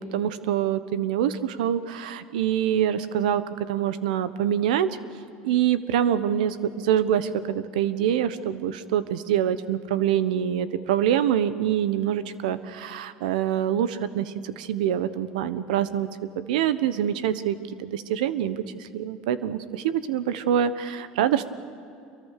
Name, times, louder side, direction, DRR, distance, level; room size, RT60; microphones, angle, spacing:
voice 1, 0.0-4.9 5.4-16.1 16.4-21.4, right 10 dB, 80° right, 14 dB, 1.2 m, -25 dB
27.5 x 23.5 x 6.8 m, 2.5 s
supercardioid pair, 95°, 4 cm